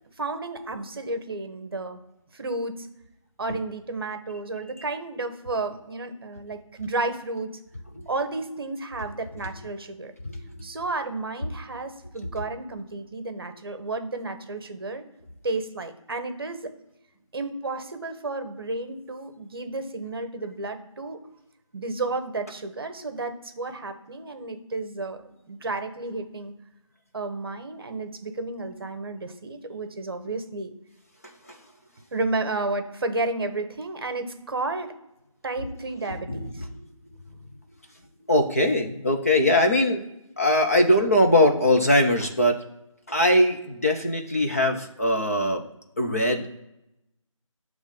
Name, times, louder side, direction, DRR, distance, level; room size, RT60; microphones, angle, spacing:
voice 1, 0.2-2.0 2.3-2.9 3.4-7.5 8.1-10.1 10.6-15.0 15.4-16.7 17.3-21.2 21.7-26.5 27.1-30.7 32.1-34.9 35.4-36.7, right 2 dB, 45° right, 8 dB, 0.9 m, -32 dB
voice 2, 10.3-10.7 31.5-31.6 36.1-36.7 38.3-40.0 40.4-42.6 43.1-45.6 46.0-46.6, left 1 dB, 25° left, 2 dB, 0.5 m, -21 dB
7.0 x 3.1 x 5.1 m, 0.89 s
figure-of-eight pair, 170°, 17 cm